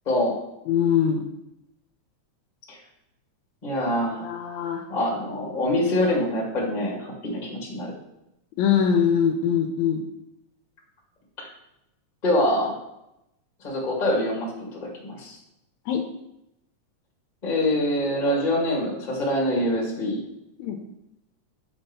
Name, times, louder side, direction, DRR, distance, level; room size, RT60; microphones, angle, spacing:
voice 1, 0.0-0.4 2.7-2.8 3.6-4.3 4.9-7.9 11.4-11.5 12.2-12.7 13.6-15.4 17.4-20.2, left 1 dB, 20° left, -3 dB, 1.4 m, -25 dB
voice 2, 0.7-1.2 4.2-4.8 8.6-10.0 15.9-16.0 20.6-20.8, left 8 dB, 80° left, 4 dB, 1.8 m, -22 dB
6.0 x 4.4 x 5.4 m, 0.85 s
omnidirectional pair, 3.4 m